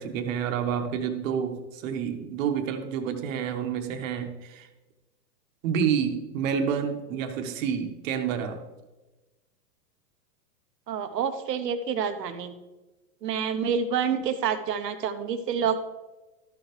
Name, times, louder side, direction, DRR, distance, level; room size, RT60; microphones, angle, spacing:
voice 1, 0.0-4.7 5.6-8.6, right 7 dB, 55° right, 6 dB, 1.4 m, -29 dB
voice 2, 10.9-12.5 13.2-15.8, right 7 dB, 80° right, 8 dB, 1.2 m, -28 dB
12.5 x 6.8 x 3.2 m, 1.1 s
hypercardioid pair, 130°, 48 cm